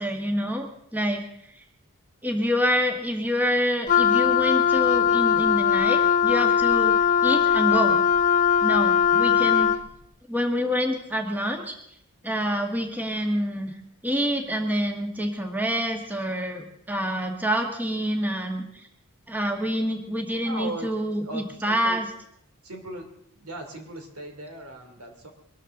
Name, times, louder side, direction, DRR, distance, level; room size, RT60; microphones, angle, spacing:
voice 1, 0.0-1.6 2.2-7.0 7.2-8.0 8.6-9.7 10.3-11.8 12.2-13.7 14.0-18.9 19.3-22.1, equal, 10° right, 3 dB, 1.5 m, -27 dB
Wind instrument woodwind instrument, 3.9-9.9, left 8 dB, 35° left, 0.5 m, -20 dB
voice 2, 20.4-20.9 21.2-22.0 22.6-23.1 23.3-25.3, right 2 dB, 80° right, 4 dB, 3.0 m, -37 dB
23.0 x 13.0 x 3.9 m, 0.71 s
head